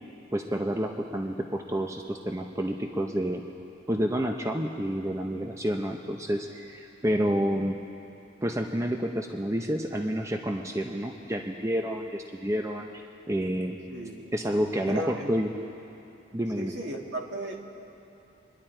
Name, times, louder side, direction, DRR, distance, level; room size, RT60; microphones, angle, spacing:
voice 1, 0.3-3.4 3.9-7.8 8.4-13.8 14.3-15.5 16.3-16.7, equal, 15° right, 3 dB, 0.6 m, -29 dB
voice 2, 13.9-14.3 14.8-15.3 16.6-17.6, right 1 dB, 65° right, 0 dB, 1.8 m, -35 dB
27.0 x 11.0 x 4.4 m, 2.8 s
head